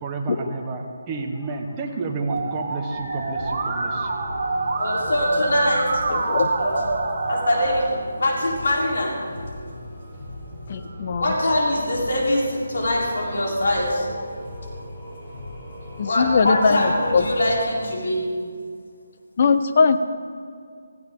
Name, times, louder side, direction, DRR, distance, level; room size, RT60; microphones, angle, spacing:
voice 1, 0.0-4.2, right 3 dB, 15° right, 1 dB, 1.1 m, -30 dB
Musical instrument, 2.3-7.9, right 3 dB, 35° right, 1.7 m, -26 dB
sound 1, 2.9-17.9, left 1 dB, 5° left, 3.2 m, -38 dB
voice 2, 4.7-6.3 6.6-6.7 7.3-9.1 11.2-14.1 16.1-18.3, left 1 dB, 60° left, -3 dB, 3.7 m, -23 dB
voice 3, 6.1-6.5 10.7-11.3 16.0-17.2 19.4-20.0, left 5 dB, 35° left, 9 dB, 0.7 m, -20 dB
17.5 x 15.0 x 3.7 m, 2.2 s
hypercardioid pair, 170°, 0 cm